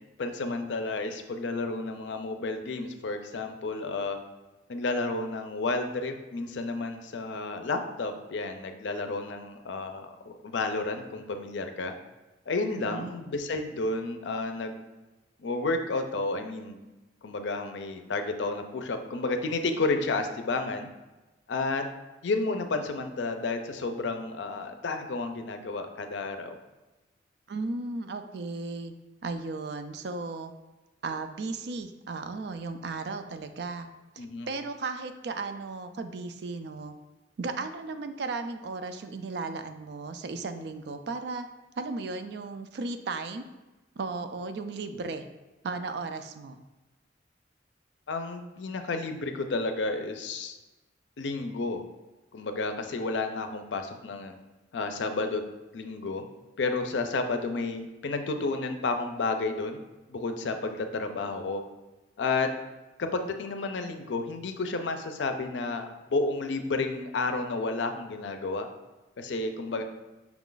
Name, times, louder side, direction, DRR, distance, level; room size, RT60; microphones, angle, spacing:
voice 1, 0.2-4.2 4.7-11.9 12.5-14.8 15.4-16.8 17.2-20.9 21.5-21.9 22.2-26.5 34.2-34.5 48.1-50.6 51.2-51.8 52.3-54.4 54.7-55.4 55.7-56.3 56.6-59.8 60.1-61.6 62.2-62.5 63.0-68.7 69.2-69.8, left 3 dB, 75° left, 6 dB, 0.5 m, -31 dB
voice 2, 12.7-13.1 27.5-28.9 29.2-30.5 31.0-33.9 34.2-36.9 37.4-41.5 41.8-43.5 44.0-45.3 45.6-46.6, right 3 dB, 60° right, 8 dB, 0.4 m, -35 dB
5.9 x 2.4 x 3.8 m, 1.1 s
head